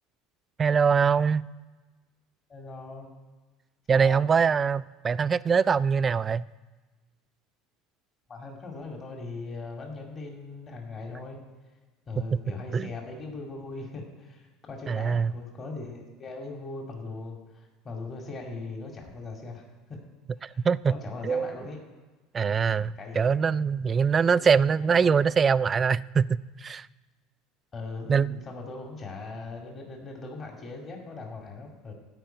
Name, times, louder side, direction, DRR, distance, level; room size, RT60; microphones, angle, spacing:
voice 1, 0.6-1.5 3.9-6.4 12.2-12.4 12.7-12.9 14.9-15.3 20.4-20.9 21.2-21.5 22.3-26.9 28.1-28.4, right 6 dB, 30° right, 0.3 m, -23 dB
voice 2, 2.5-3.1 3.9-4.3 8.3-11.4 12.1-20.0 20.4-21.8 23.0-23.3 24.3-24.5 24.9-25.1 27.7-31.9, left 3 dB, 35° left, 2.2 m, -40 dB
13.5 x 5.0 x 9.0 m
supercardioid pair, 105°, 0 cm